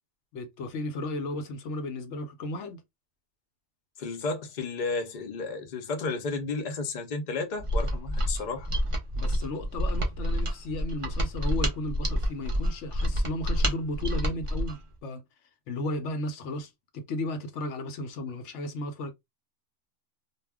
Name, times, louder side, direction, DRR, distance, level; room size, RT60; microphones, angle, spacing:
voice 1, 0.3-2.8 9.1-15.2 15.7-19.1, left 1 dB, 80° left, 1.0 m, -34 dB
voice 2, 4.0-8.7, left 3 dB, 50° left, 0.7 m, -32 dB
Mechanisms, 7.6-14.8, equal, 35° right, 0.5 m, -28 dB
2.3 x 2.1 x 3.3 m
omnidirectional pair, 1.2 m